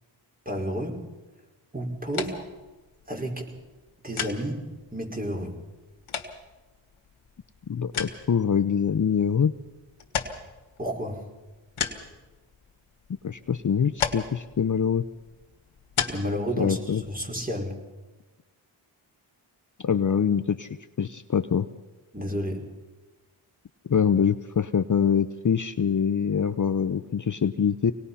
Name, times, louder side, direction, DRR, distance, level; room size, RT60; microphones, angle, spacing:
voice 1, 0.5-1.1 1.7-2.5 3.1-3.5 4.0-5.6 10.8-11.2 16.1-17.7 22.1-22.7, equal, 20° right, 1 dB, 5.3 m, -31 dB
sound 1, 2.1-17.7, left 7 dB, 90° left, 1.7 m, -37 dB
voice 2, 7.7-9.5 13.2-15.0 16.6-17.0 19.8-20.7 21.0-21.7 23.9-27.9, left 7 dB, 40° left, 11 dB, 0.7 m, -24 dB
25.0 x 19.0 x 5.7 m, 1.2 s
cardioid pair, 45°, 48 cm